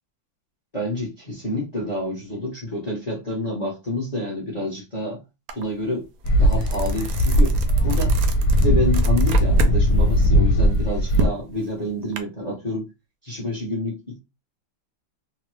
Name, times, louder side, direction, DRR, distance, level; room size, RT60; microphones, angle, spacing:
voice 1, 0.7-5.2 5.5-6.1 6.4-8.2 8.6-12.9 13.2-14.2, left 1 dB, 40° left, 0.5 m, -28 dB
sound 1, 5.5-5.6 6.0-9.8 10.1-12.2, right 2 dB, 75° right, 0.8 m, -29 dB
sound 2, 6.2-11.3, equal, 70° left, 1.1 m, -19 dB
3.1 x 2.1 x 3.0 m
omnidirectional pair, 2.0 m